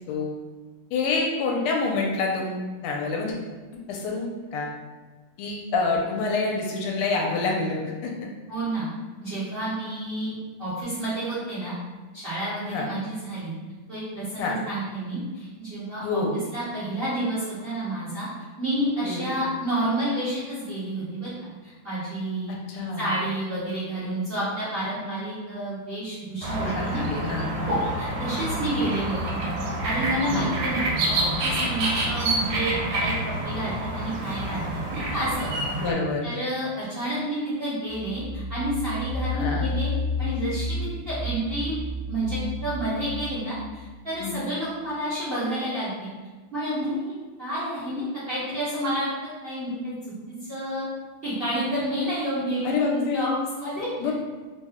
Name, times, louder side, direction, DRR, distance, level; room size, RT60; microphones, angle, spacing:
voice 1, 0.9-3.4 3.9-4.7 5.4-8.1 12.7-12.9 14.4-14.5 16.0-16.3 19.0-19.4 22.5-23.1 26.6-27.7 30.3-30.4 35.7-36.2 39.4-39.7 44.2-44.5 52.6-53.3 54.0-54.1, left 3 dB, 85° left, -1 dB, 1.5 m, -27 dB
voice 2, 8.5-8.9 9.2-11.7 12.1-13.5 13.9-16.2 16.5-18.3 18.6-21.3 21.6-22.5 23.0-27.2 27.6-33.1 33.4-35.5 36.2-39.9 40.2-41.7 42.1-46.1 46.5-47.0 47.4-49.9 50.3-50.9 51.2-54.1, right 1 dB, 35° right, -12 dB, 1.1 m, -30 dB
sound 1, 26.4-35.9, right 1 dB, 85° right, 1.5 m, -28 dB
sound 2, 37.8-44.5, left 3 dB, 30° left, 0.8 m, -31 dB
3.6 x 2.1 x 3.5 m, 1.3 s
omnidirectional pair, 2.4 m